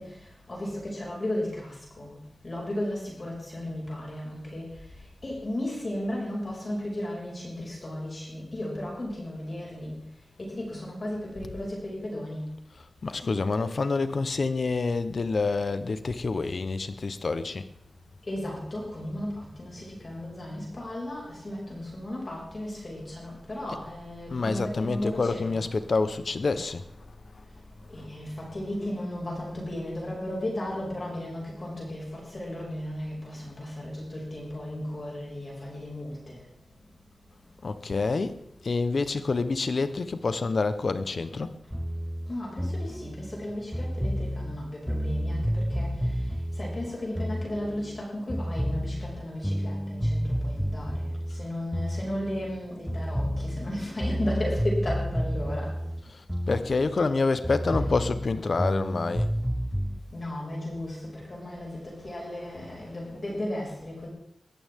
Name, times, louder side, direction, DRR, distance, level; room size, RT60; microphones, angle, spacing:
voice 1, 0.0-2.2 2.4-10.0 10.4-12.5 18.2-25.6 27.5-36.4 42.3-55.8 57.6-57.8 60.1-64.1, left 1 dB, 40° left, 5.9 m, -35 dB
voice 2, 13.0-17.7 24.3-26.8 37.6-41.5 56.1-59.3, left 3 dB, 55° left, 1.0 m, -27 dB
sound 1, 41.7-48.0 48.3-52.6 52.9-57.2 57.4-60.0, equal, ahead, 0.6 m, -30 dB
22.0 x 14.0 x 3.7 m
wide cardioid pair, 110°, 0 cm